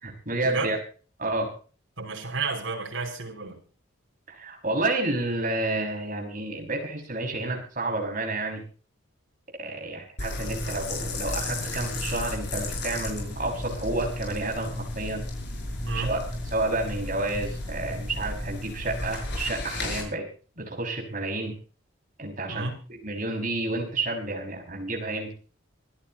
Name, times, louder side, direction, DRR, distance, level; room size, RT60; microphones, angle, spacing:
voice 1, 0.0-0.8 1.2-1.5 4.3-8.6 9.6-15.3 15.9-16.2 16.5-20.2 20.6-21.6 22.2-22.7 23.0-25.3, right 2 dB, 40° right, 1 dB, 6.0 m, -30 dB
voice 2, 2.0-3.6 15.9-16.2 22.5-22.8, right 3 dB, 75° right, 0 dB, 5.9 m, -31 dB
sound 1, 10.2-20.0, left 2 dB, 55° left, 7.2 m, -33 dB
25.5 x 13.5 x 3.0 m, 0.39 s
head